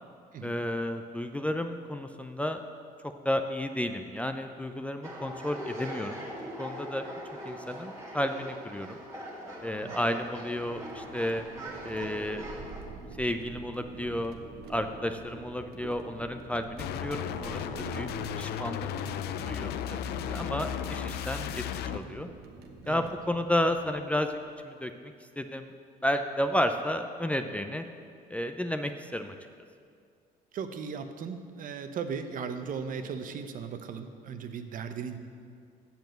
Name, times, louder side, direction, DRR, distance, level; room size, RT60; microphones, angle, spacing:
voice 1, 0.4-2.6 3.0-6.3 6.6-7.0 7.5-9.0 9.6-11.4 11.8-12.5 13.2-14.3 14.7-18.1 18.4-18.9 19.4-22.3 22.9-25.7 26.0-27.8 28.3-29.3, left 1 dB, 10° left, 6 dB, 0.4 m, -32 dB
sound 1, 5.0-12.8, equal, 20° right, 2.0 m, -42 dB
sound 2, 9.5-24.5, right 4 dB, 70° right, 1.1 m, -46 dB
sound 3, 16.8-22.0, left 10 dB, 70° left, 0.5 m, -35 dB
voice 2, 30.5-35.2, right 6 dB, 55° right, 8 dB, 0.8 m, -37 dB
7.9 x 7.1 x 7.8 m, 2.2 s
cardioid pair, 110°, 17 cm